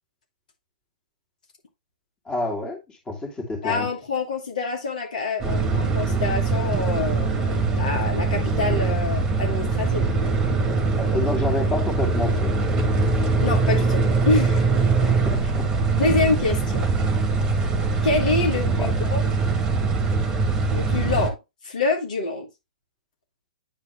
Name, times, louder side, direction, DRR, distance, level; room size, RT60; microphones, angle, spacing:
voice 1, 2.3-3.9 10.5-10.6 11.0-12.5 15.0-15.7 18.5-18.9, left 2 dB, 15° left, 2.6 m, -29 dB
voice 2, 3.6-10.1 13.4-14.7 15.9-16.9 18.0-19.2 20.7-21.4 21.6-22.5, left 3 dB, 65° left, 2.5 m, -26 dB
sound 1, 5.4-21.3, right 4 dB, 15° right, 1.6 m, -22 dB
9.7 x 3.9 x 3.4 m
hypercardioid pair, 120°, 5 cm